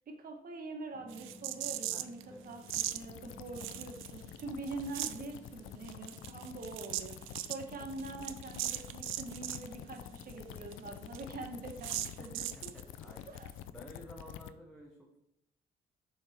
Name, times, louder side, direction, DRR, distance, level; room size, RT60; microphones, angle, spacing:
voice 1, 0.1-12.7 13.0-13.5, right 3 dB, 45° right, 2 dB, 1.4 m, -44 dB
sound 1, 0.9-11.9, left 3 dB, 30° left, 1.0 m, -57 dB
sound 2, 1.1-2.2 2.7-3.0 3.6-4.4 4.7-5.3 5.9-9.7 10.0-10.1 10.3-10.4 10.7-10.8 11.1-11.2 11.8-12.8, right 13 dB, 90° right, 0.4 m, -38 dB
voice 2, 1.9-2.6 12.2-13.3 13.7-15.2, equal, ahead, -2 dB, 1.0 m, -53 dB
sound 3, 2.7-14.5, left 11 dB, 80° left, 0.4 m, -49 dB
7.0 x 3.6 x 4.4 m, 0.83 s
cardioid pair, 90°, 20 cm